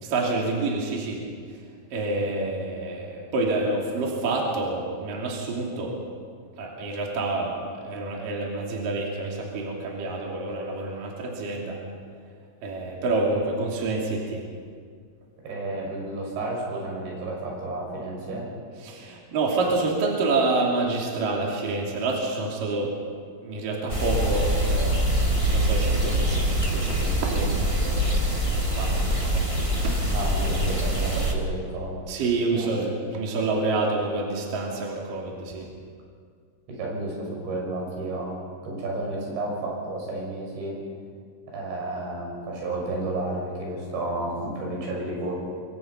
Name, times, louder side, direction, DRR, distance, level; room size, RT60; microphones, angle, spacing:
voice 1, 0.0-1.2 1.9-6.0 6.6-11.8 12.6-14.4 18.8-22.9 23.4-24.9 25.3-30.0 32.1-35.7, right 3 dB, 55° right, -2 dB, 4.3 m, -28 dB
voice 2, 15.4-18.5 30.1-32.0 32.5-32.8 36.7-38.3 38.6-40.8 41.5-45.3, right 2 dB, 85° right, -2 dB, 8.5 m, -31 dB
sound 1, 23.9-31.3, right 1 dB, 15° right, 1.3 m, -24 dB
27.0 x 24.0 x 5.5 m, 2.1 s
omnidirectional pair, 5.0 m